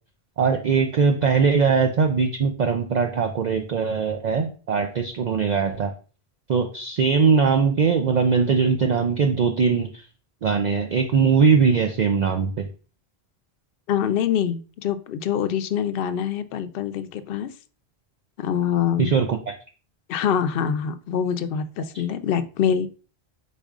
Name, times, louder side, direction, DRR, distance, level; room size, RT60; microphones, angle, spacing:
voice 1, 0.4-5.9 6.5-10.1 10.4-12.7 19.0-19.6 21.9-22.0, right 5 dB, 55° right, 5 dB, 0.5 m, -21 dB
voice 2, 13.9-17.5 18.4-19.1 20.1-22.9, left 8 dB, 70° left, 11 dB, 0.7 m, -25 dB
5.0 x 4.1 x 2.4 m, 0.37 s
omnidirectional pair, 1.1 m